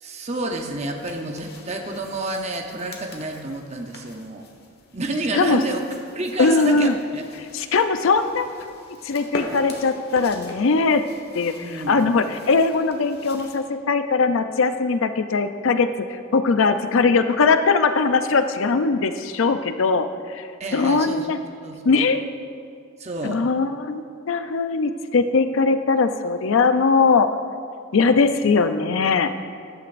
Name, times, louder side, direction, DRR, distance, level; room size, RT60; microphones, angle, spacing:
voice 1, 0.0-4.5 4.9-5.8 6.1-7.2 7.6-7.7 11.6-12.0 20.6-21.3 21.6-22.0 23.0-23.4, right 2 dB, 35° right, 3 dB, 0.7 m, -29 dB
sound 1, 1.0-13.6, left 2 dB, 50° left, 1.4 m, -42 dB
voice 2, 6.4-6.9 7.5-8.5 9.0-11.1 11.3-15.9 16.3-21.4 21.8-22.2 23.2-27.3 27.9-29.3, left 4 dB, 70° left, 9 dB, 0.5 m, -20 dB
14.0 x 11.5 x 2.6 m, 2.3 s
head